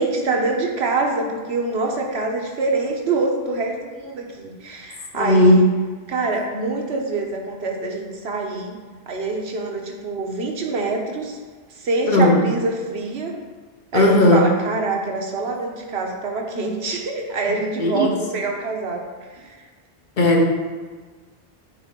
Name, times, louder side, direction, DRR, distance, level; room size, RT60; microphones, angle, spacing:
voice 1, 0.0-5.6 6.1-8.8 9.1-11.4 11.8-13.3 13.9-19.0 19.3-19.5, right 3 dB, 85° right, 1 dB, 1.2 m, -25 dB
voice 2, 5.1-5.7 12.1-12.4 13.9-14.5 17.8-18.1 20.2-20.4, left 1 dB, 55° left, 1 dB, 0.9 m, -15 dB
8.8 x 3.6 x 3.7 m, 1.4 s
omnidirectional pair, 1.0 m